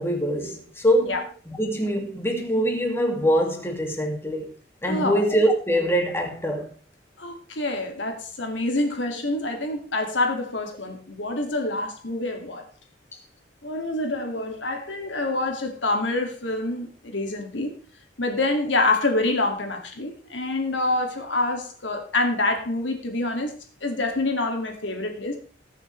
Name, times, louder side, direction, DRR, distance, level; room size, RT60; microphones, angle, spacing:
voice 1, 0.0-4.5 4.8-6.7, equal, 15° left, 2.3 m, -24 dB
voice 2, 4.8-5.2 7.2-12.6 13.6-17.7 18.2-23.5 23.8-25.4, left 2 dB, 85° left, 2.4 m, -26 dB
20.0 x 7.2 x 3.3 m
head